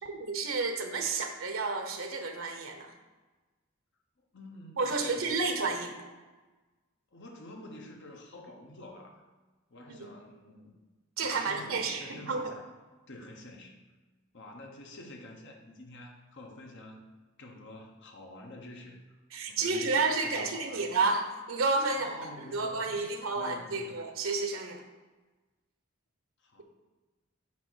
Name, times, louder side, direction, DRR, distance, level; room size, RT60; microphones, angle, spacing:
voice 1, 0.0-2.9 4.8-6.1 9.9-10.1 11.2-12.5 19.3-22.1 22.5-24.8, right 3 dB, 85° right, 5 dB, 0.9 m, -31 dB
voice 2, 4.3-5.8 7.1-9.2 9.7-10.7 11.2-12.7 13.1-13.8 14.3-17.1 17.4-19.2 19.5-20.9 21.9-24.0 26.4-26.6, left 1 dB, 60° left, 2 dB, 1.1 m, -48 dB
8.5 x 2.9 x 6.3 m, 1.2 s
head